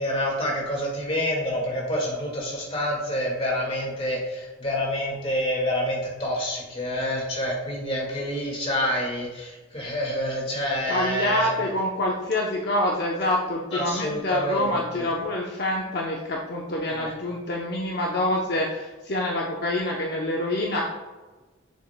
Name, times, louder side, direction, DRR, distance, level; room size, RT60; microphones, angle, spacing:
voice 1, 0.0-11.5 13.7-15.0 16.9-17.1, equal, 30° left, -2 dB, 1.8 m, -27 dB
voice 2, 10.9-20.8, left 1 dB, 55° left, -1 dB, 0.7 m, -26 dB
7.3 x 7.2 x 2.2 m, 1.2 s
head